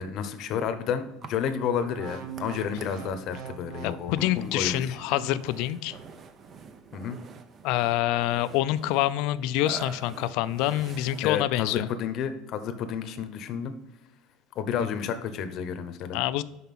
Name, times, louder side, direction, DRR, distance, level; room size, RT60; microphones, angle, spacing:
voice 1, 0.0-5.0 6.9-7.2 11.2-13.7 14.5-16.2, left 7 dB, 45° left, 10 dB, 0.8 m, -31 dB
Burping eructation, 1.2-11.9, right 5 dB, 30° right, 0.6 m, -47 dB
sound 1, 1.8-6.1 6.7-6.9, right 8 dB, 50° right, 0.9 m, -43 dB
voice 2, 3.8-6.0 7.6-11.9 14.8-14.9 16.1-16.4, left 14 dB, 65° left, 14 dB, 0.4 m, -26 dB
5.7 x 5.5 x 5.8 m, 0.96 s
cardioid pair, 145°, 0 cm